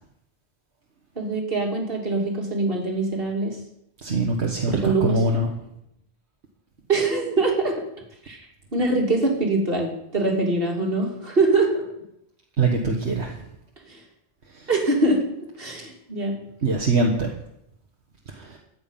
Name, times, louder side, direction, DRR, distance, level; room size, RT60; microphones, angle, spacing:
voice 1, 1.2-3.6 4.7-5.2 6.9-7.8 8.2-8.4 8.7-11.8 13.9-14.0 14.7-15.2 15.6-16.4, right 2 dB, 60° right, 1 dB, 3.0 m, -23 dB
voice 2, 4.0-5.5 12.6-13.4 14.5-14.7 16.6-17.3 18.3-18.6, right 3 dB, 85° right, 0 dB, 1.8 m, -23 dB
14.0 x 9.6 x 5.7 m, 0.78 s
omnidirectional pair, 1.1 m